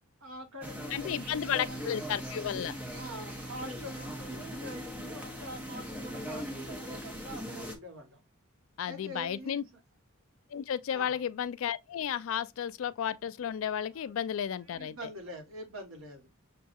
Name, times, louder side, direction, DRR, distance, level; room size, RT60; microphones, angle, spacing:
voice 1, 0.2-2.0 2.9-8.2 8.9-9.7 10.9-11.2 13.9-14.0 14.7-16.3, right 1 dB, 70° right, 1.4 m, -45 dB
sound 1, 0.6-7.7, equal, 5° right, 0.8 m, -40 dB
voice 2, 0.9-2.7 8.8-9.6 10.5-15.0, left 9 dB, 65° left, 0.3 m, -33 dB
6.7 x 2.3 x 2.6 m
head